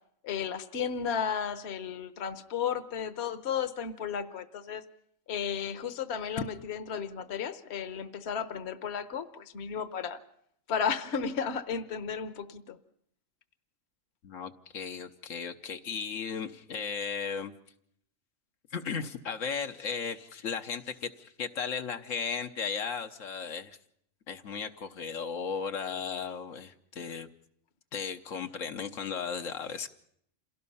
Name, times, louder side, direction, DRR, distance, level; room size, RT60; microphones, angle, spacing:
voice 1, 0.2-4.8 5.3-10.2 10.7-12.8, left 7 dB, 60° left, 12 dB, 1.2 m, -34 dB
voice 2, 14.2-17.5 18.7-23.8 24.3-27.3 27.9-29.9, left 6 dB, 80° left, 6 dB, 1.4 m, -35 dB
27.5 x 17.5 x 5.5 m, 0.69 s
omnidirectional pair, 1.3 m